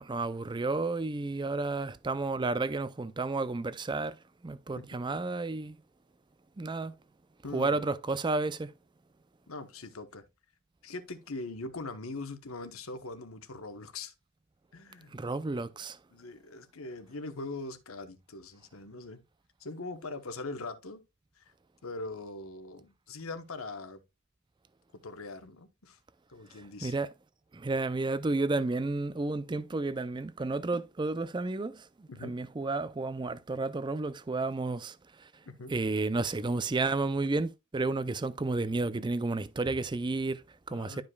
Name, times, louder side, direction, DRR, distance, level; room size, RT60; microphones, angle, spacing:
voice 1, 0.0-4.2 4.4-5.8 6.6-6.9 7.5-8.7 15.1-16.0 26.5-27.1 27.5-35.4 35.7-41.0, right 3 dB, 20° right, 0.4 m, -32 dB
voice 2, 7.4-7.8 9.5-10.2 10.8-14.1 14.7-15.1 16.1-19.2 19.6-21.0 21.4-21.5 21.8-24.0 25.0-26.0 26.3-26.9 32.1-32.3 35.5-35.7 40.7-41.0, left 3 dB, 80° left, 1.1 m, -41 dB
11.5 x 5.2 x 2.3 m
head